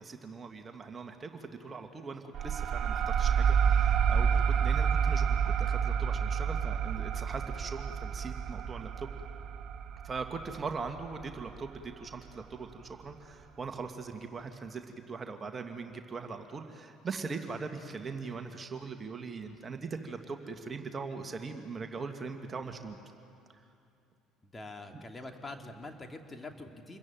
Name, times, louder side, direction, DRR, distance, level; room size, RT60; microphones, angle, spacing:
voice 1, 0.0-9.1 10.0-23.0 24.9-25.0, right 4 dB, 30° right, 6 dB, 2.1 m, -41 dB
sound 1, 2.3-11.6, right 7 dB, 50° right, 0.7 m, -29 dB
voice 2, 24.4-27.0, left 2 dB, 20° left, 4 dB, 2.7 m, -45 dB
27.5 x 22.5 x 9.3 m, 2.6 s
figure-of-eight pair, 55°, 0 cm